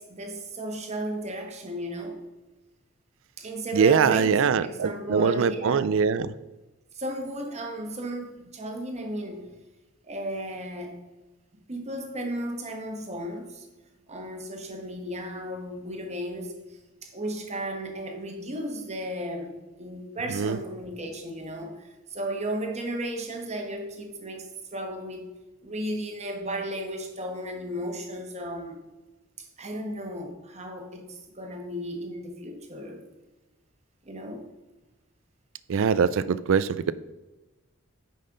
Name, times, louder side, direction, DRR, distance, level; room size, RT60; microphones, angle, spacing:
voice 1, 0.0-2.2 3.4-5.8 6.9-9.6 10.0-10.9 11.7-13.7 14.1-25.3 25.6-28.8 29.4-33.0 34.0-34.4, right 1 dB, 30° right, 3 dB, 1.3 m, -34 dB
voice 2, 3.7-6.3 20.3-20.6 35.7-36.9, right 6 dB, 65° right, 16 dB, 0.4 m, -23 dB
9.6 x 5.5 x 3.8 m, 1.1 s
head